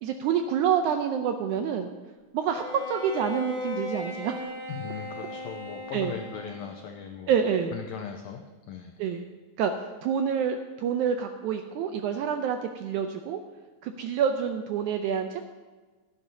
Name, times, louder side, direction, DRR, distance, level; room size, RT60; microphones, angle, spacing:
voice 1, 0.0-1.9 2.3-4.4 5.9-6.2 7.3-7.8 9.0-9.3 9.6-13.4 13.8-15.4, right 7 dB, 85° right, 6 dB, 1.8 m, -27 dB
Bowed string instrument, 2.5-6.9, left 2 dB, 35° right, 4.6 m, -37 dB
voice 2, 4.7-7.3 7.7-8.4 8.7-8.9, left 7 dB, 90° left, 4 dB, 1.6 m, -38 dB
16.5 x 12.5 x 2.7 m, 1.3 s
omnidirectional pair, 4.0 m